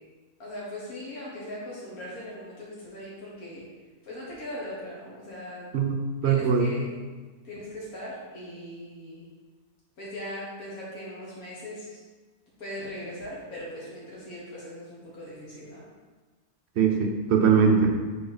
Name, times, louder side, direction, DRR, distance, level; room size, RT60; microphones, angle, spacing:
voice 1, 0.4-3.6 4.0-5.7 6.2-7.0 7.4-9.3 10.0-12.0 12.6-15.8, left 1 dB, 75° left, -7 dB, 1.8 m, -39 dB
voice 2, 5.7-6.7 16.8-18.0, right 6 dB, 65° right, 2 dB, 0.7 m, -21 dB
4.5 x 4.2 x 4.9 m, 1.4 s
omnidirectional pair, 1.5 m